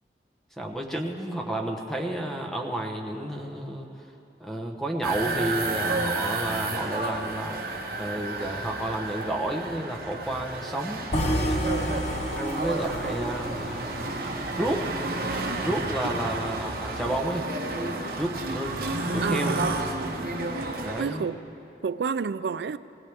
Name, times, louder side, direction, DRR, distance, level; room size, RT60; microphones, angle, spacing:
voice 1, 0.6-3.9 4.4-7.6 8.0-11.6 12.1-13.9 14.5-14.9 15.6-17.5 18.2-19.6 20.8-21.3, right 1 dB, ahead, 1 dB, 1.0 m, -31 dB
sound 1, 5.0-21.0, right 2 dB, 55° right, 1.3 m, -31 dB
sound 2, 11.1-15.2, equal, 40° left, 0.8 m, -30 dB
voice 2, 19.2-19.8 21.0-21.4 21.8-22.8, right 5 dB, 75° right, 15 dB, 0.4 m, -29 dB
20.0 x 17.5 x 3.5 m, 2.9 s
head